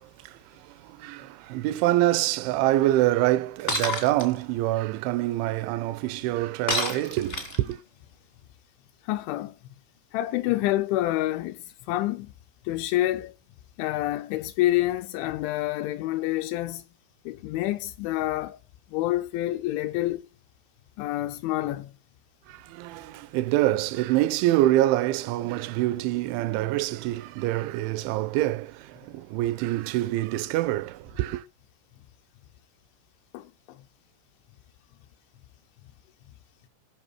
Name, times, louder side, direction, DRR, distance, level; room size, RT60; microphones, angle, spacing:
voice 1, 0.0-7.8 22.5-31.4, right 15 dB, 80° right, 3.0 m, -26 dB
Shatter, 3.7-4.3 6.7-7.7, left 2 dB, 45° left, 0.7 m, -28 dB
voice 2, 9.0-9.6 10.1-12.3 12.6-13.3 13.8-16.9 17.3-18.6 18.9-20.2 21.0-21.9 33.3-33.8, left 15 dB, 80° left, 3.0 m, -28 dB
17.5 x 6.1 x 4.6 m
omnidirectional pair, 5.5 m